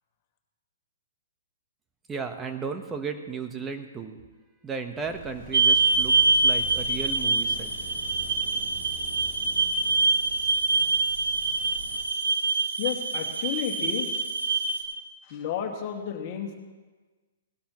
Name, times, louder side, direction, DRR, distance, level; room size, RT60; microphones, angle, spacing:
voice 1, 2.1-4.2 4.6-7.7, right 5 dB, 15° right, 6 dB, 1.3 m, -35 dB
sound 1, 5.0-12.1, right 1 dB, 35° right, 5.0 m, -44 dB
sound 2, 5.5-14.8, right 3 dB, 80° right, 2.1 m, -25 dB
voice 2, 12.8-14.2 15.2-16.5, left 8 dB, 40° left, 2 dB, 2.1 m, -32 dB
19.5 x 12.5 x 3.2 m, 1.3 s
hypercardioid pair, 125°, 0 cm